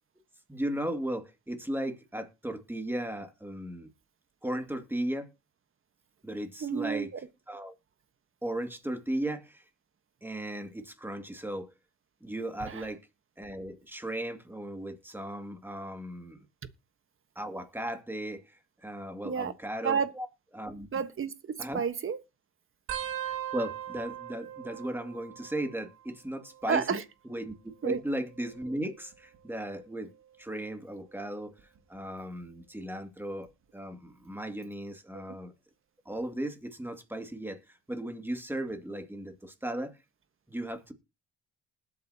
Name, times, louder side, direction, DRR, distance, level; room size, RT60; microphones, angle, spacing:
voice 1, 0.5-3.9 4.4-5.3 6.2-7.1 7.5-7.7 8.4-9.6 10.2-11.7 12.2-13.0 13.4-16.4 17.4-20.3 20.5-20.9 21.6-21.8 23.2-27.0 27.3-30.1 30.4-31.5 31.9-35.5 36.1-40.0 40.5-40.9, right 1 dB, 5° right, 2.3 m, -36 dB
voice 2, 6.6-7.2 12.6-12.9 19.2-19.5 19.8-20.1 20.9-22.2 26.7-27.0 27.8-28.0 35.1-35.3, right 6 dB, 45° right, 1.3 m, -31 dB
sound 1, 22.9-26.1 26.3-26.9 27.9-29.4 30.0-30.4 31.6-32.0 33.5-33.6, right 10 dB, 85° right, 2.5 m, -41 dB
20.0 x 8.6 x 2.9 m
cardioid pair, 90°, 30 cm